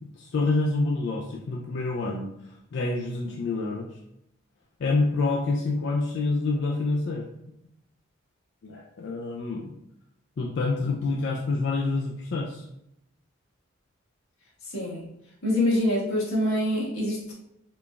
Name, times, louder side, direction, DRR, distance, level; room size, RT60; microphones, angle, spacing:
voice 1, 0.0-2.3 2.7-3.9 4.8-7.2 8.6-9.7 10.4-12.7, left 3 dB, 55° left, -1 dB, 0.4 m, -27 dB
voice 2, 14.7-15.1 15.4-17.3, left 1 dB, 90° left, -6 dB, 1.5 m, -25 dB
3.9 x 3.3 x 2.3 m, 0.80 s
head